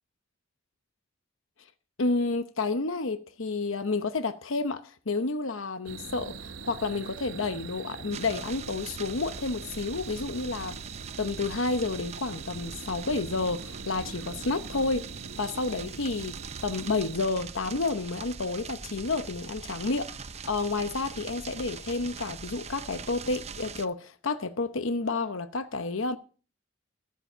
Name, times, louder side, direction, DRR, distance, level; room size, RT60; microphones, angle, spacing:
voice 1, 2.0-15.1 15.4-16.4 16.6-26.2, left 3 dB, 80° left, 0.9 m, -30 dB
sound 1, 5.9-17.2, right 5 dB, 70° right, 0.8 m, -42 dB
sound 2, 8.1-23.9, right 5 dB, 35° right, 0.6 m, -42 dB
14.5 x 7.6 x 6.7 m
head